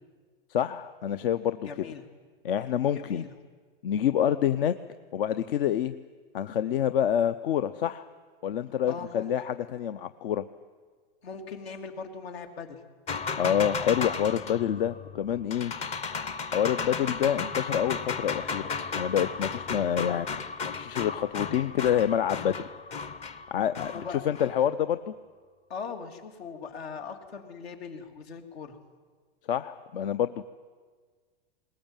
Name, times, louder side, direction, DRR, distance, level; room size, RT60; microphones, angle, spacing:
voice 1, 0.5-1.9 2.4-3.2 3.8-4.7 5.1-5.9 6.3-8.1 8.4-10.4 13.4-15.7 16.5-18.6 19.0-22.6 23.5-25.1 29.5-30.4, left 9 dB, 60° left, 12 dB, 0.8 m, -27 dB
voice 2, 1.6-2.0 2.9-3.4 8.9-9.3 11.2-12.8 23.9-24.2 25.7-28.8, left 5 dB, 80° left, 5 dB, 3.1 m, -40 dB
sound 1, 13.1-24.7, left 5 dB, 20° left, 0.7 m, -34 dB
21.0 x 20.0 x 9.0 m, 1.5 s
hypercardioid pair, 135°, 31 cm